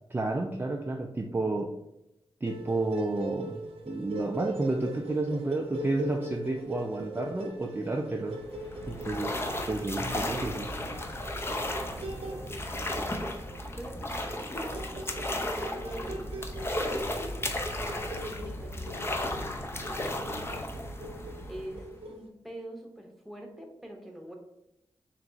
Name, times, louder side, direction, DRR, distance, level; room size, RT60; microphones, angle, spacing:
voice 1, 0.1-1.7 2.4-8.4 8.9-9.4 9.7-10.7, right 2 dB, 20° right, 2 dB, 0.4 m, -31 dB
sound 1, 2.4-22.3, right 1 dB, 90° right, 0.6 m, -41 dB
sound 2, 8.3-22.1, left 1 dB, 25° left, 0.6 m, -34 dB
voice 2, 11.9-14.5 15.3-16.5 17.8-20.8 21.5-24.3, right 1 dB, ahead, 1 dB, 1.0 m, -44 dB
3.5 x 3.0 x 3.9 m, 0.86 s
cardioid pair, 65°, 10 cm